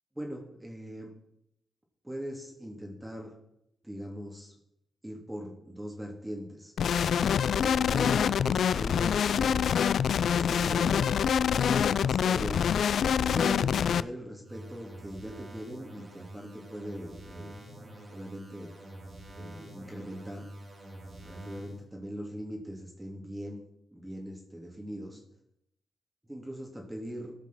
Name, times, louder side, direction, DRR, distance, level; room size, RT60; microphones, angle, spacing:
voice 1, 0.2-1.1 2.0-3.3 3.8-4.5 5.0-6.7 7.6-9.7 10.3-11.1 11.6-12.7 13.2-17.6 18.1-18.7 19.4-20.5 21.2-23.6 23.9-25.2 26.3-27.3, equal, 10° right, 0 dB, 2.8 m, -40 dB
sound 1, 6.8-14.0, left 8 dB, 75° left, 0.3 m, -26 dB
sound 2, 14.4-21.8, right 1 dB, 50° right, 3.9 m, -47 dB
14.5 x 5.9 x 6.1 m, 0.80 s
supercardioid pair, 50°, 0 cm